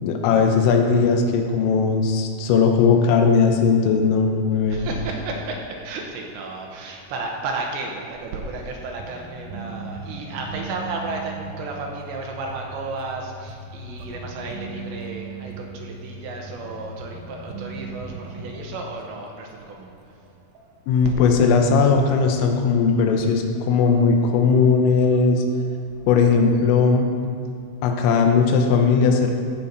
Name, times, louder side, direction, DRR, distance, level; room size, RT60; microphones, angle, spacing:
voice 1, 0.0-4.9 20.9-25.4 26.1-27.1 27.8-29.3, left 5 dB, 85° left, 3 dB, 3.6 m, -18 dB
voice 2, 4.7-20.0, right 3 dB, 70° right, 0 dB, 3.1 m, -33 dB
sound 1, 9.0-19.2 19.5-19.7 20.0-20.1 20.6-23.2 23.6-24.1 24.5-24.6 25.0-26.9, right 2 dB, 90° right, 3.7 m, -38 dB
15.0 x 8.4 x 4.6 m, 2.5 s
omnidirectional pair, 5.8 m